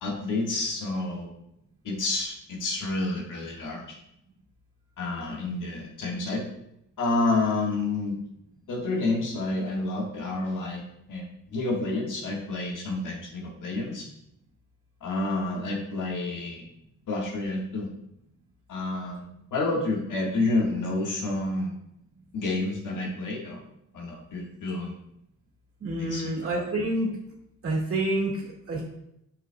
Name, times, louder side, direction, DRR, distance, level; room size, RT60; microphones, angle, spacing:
voice 1, 0.0-1.3 1.8-4.0 5.0-6.4 7.0-8.2 8.7-10.8 11.1-11.2 11.5-14.1 15.0-16.7 17.1-17.9 18.7-19.2 19.5-21.7 22.3-23.6 23.9-24.9 26.0-26.6, left 2 dB, 70° left, -1 dB, 1.6 m, -29 dB
voice 2, 25.8-27.1 27.6-28.8, right 1 dB, 45° right, -2 dB, 1.9 m, -28 dB
7.1 x 5.9 x 2.2 m, 0.79 s
wide cardioid pair, 160°, 32 cm